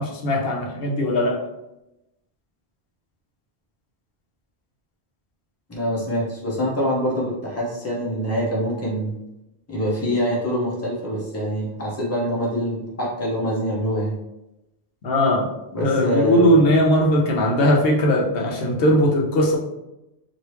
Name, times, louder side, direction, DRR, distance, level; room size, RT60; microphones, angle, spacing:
voice 1, 0.0-1.4 15.0-15.5 15.8-19.6, equal, 70° left, 0 dB, 0.9 m, -19 dB
voice 2, 5.7-9.1 9.7-14.2 15.7-16.5, equal, 15° left, -5 dB, 0.8 m, -25 dB
3.0 x 2.6 x 3.2 m, 0.93 s
omnidirectional pair, 1.0 m